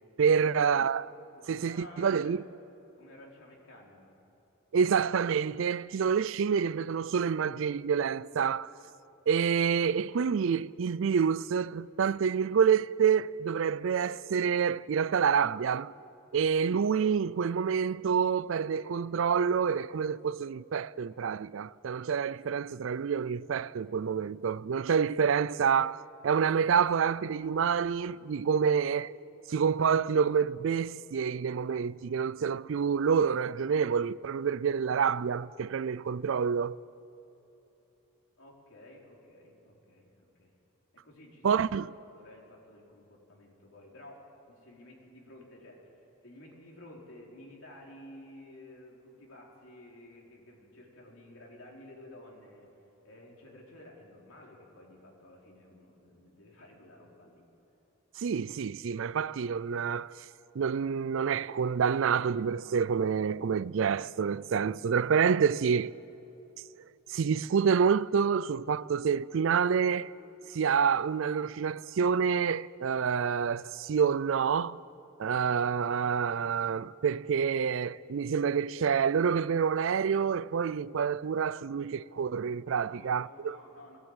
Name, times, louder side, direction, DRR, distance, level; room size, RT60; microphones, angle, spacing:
voice 1, 0.2-1.1 1.5-2.4 4.7-8.7 9.3-15.9 16.3-29.1 29.5-36.8 41.4-41.9 58.2-60.1 60.5-65.9 67.1-70.1 70.5-74.8 75.2-83.6, right 6 dB, 65° right, 0.4 m, -28 dB
voice 2, 1.5-2.4 3.0-4.2 38.4-40.5 41.0-41.7 42.1-46.0 46.2-52.7 53.0-57.4 82.7-84.0, left 1 dB, 70° left, 4.0 m, -52 dB
19.5 x 16.0 x 8.9 m
head